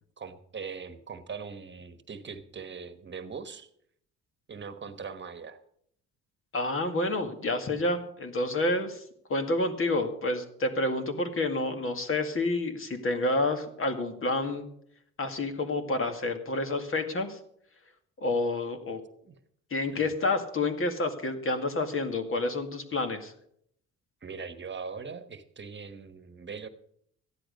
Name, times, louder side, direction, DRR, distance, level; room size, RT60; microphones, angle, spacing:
voice 1, 0.2-3.7 4.5-5.6 19.3-19.4 19.9-20.1 24.2-26.7, right 5 dB, 40° right, 10 dB, 1.3 m, -41 dB
voice 2, 6.5-9.0 9.3-14.7 15.2-17.4 18.2-19.0 19.7-23.3, left 2 dB, 45° left, 6 dB, 2.2 m, -29 dB
14.0 x 10.5 x 5.3 m, 0.68 s
cardioid pair, 90°, 30 cm